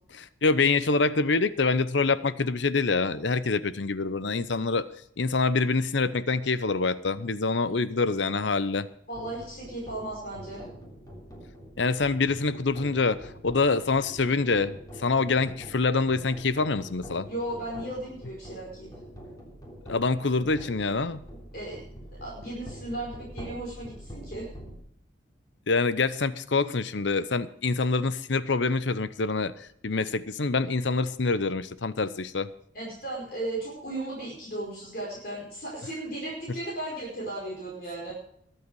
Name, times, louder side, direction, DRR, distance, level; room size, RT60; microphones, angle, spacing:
voice 1, 0.1-4.9 5.2-8.9 11.8-17.3 19.9-21.2 25.7-32.5, left 4 dB, 70° left, 15 dB, 0.8 m, -26 dB
voice 2, 9.1-10.6 17.3-18.9 21.5-21.8 22.2-24.5 32.7-38.1, right 1 dB, 50° left, -4 dB, 4.9 m, -35 dB
sound 1, 9.1-24.8, equal, 20° left, 3.4 m, -45 dB
21.5 x 7.9 x 4.8 m, 0.69 s
head